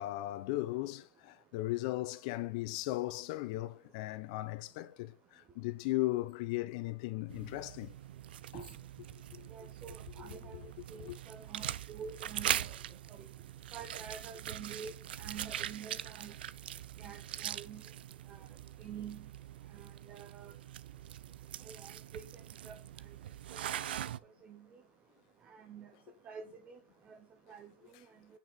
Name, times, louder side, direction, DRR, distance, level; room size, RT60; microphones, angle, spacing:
voice 1, 0.0-7.9 8.5-8.6 9.3-9.5 10.5-10.7 11.0-11.2, left 18 dB, 35° left, 0.8 m, -37 dB
sound 1, 7.3-24.2, right 11 dB, 55° right, 0.6 m, -42 dB
voice 2, 9.5-10.6 10.9-12.7 13.1-13.3 13.7-16.4 17.0-17.8 18.3-18.5 18.8-19.3 19.7-20.5 21.6-22.2 22.6-22.8 23.5-23.6 24.4-24.7 25.5-25.9 26.2-26.8 27.1-27.2 27.5-27.7, right 6 dB, 20° right, 1.0 m, -47 dB
9.1 x 4.6 x 6.0 m
hypercardioid pair, 155°, 6 cm